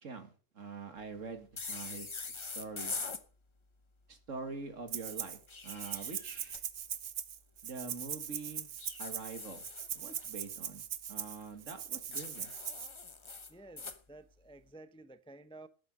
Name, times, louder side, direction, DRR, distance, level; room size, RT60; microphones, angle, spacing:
voice 1, 0.0-3.0 4.1-6.6 7.6-8.7 9.0-9.7 9.9-12.5, right 4 dB, 80° right, 2.3 m, -45 dB
sound 1, 1.6-3.2 5.3-6.6 8.8-10.3 12.1-14.0, left 4 dB, 25° left, 0.9 m, -43 dB
Rattle (instrument), 4.9-5.4 5.7-12.9, right 9 dB, 65° right, 1.2 m, -40 dB
voice 2, 13.5-15.7, right 2 dB, 5° left, 0.4 m, -53 dB
11.0 x 8.9 x 6.5 m
omnidirectional pair, 1.3 m